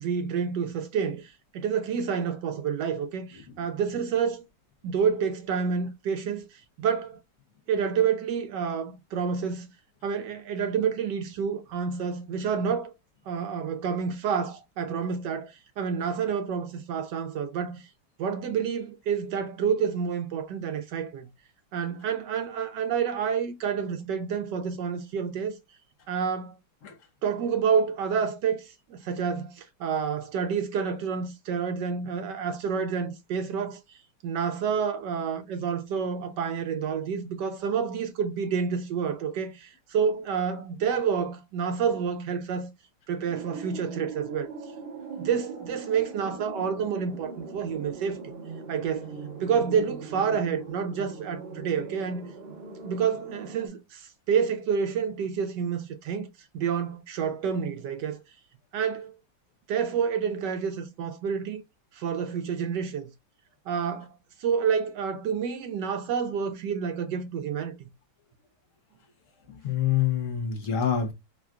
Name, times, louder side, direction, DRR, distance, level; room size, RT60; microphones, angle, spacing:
voice 1, 0.0-4.4 4.8-7.2 7.7-9.7 10.0-12.9 13.3-17.9 18.2-21.3 21.7-25.6 26.1-26.6 27.2-42.7 43.1-44.5 45.1-48.2 48.7-49.1 49.4-52.3 52.8-56.3 56.5-58.2 58.7-59.2 59.7-61.6 61.9-63.1 63.7-64.1 64.4-67.7, right 6 dB, 70° right, 1.1 m, -29 dB
sound 1, 43.3-53.7, right 4 dB, 50° right, 0.7 m, -40 dB
voice 2, 69.5-71.1, left 9 dB, 65° left, 0.7 m, -26 dB
3.7 x 2.2 x 2.3 m
omnidirectional pair, 2.1 m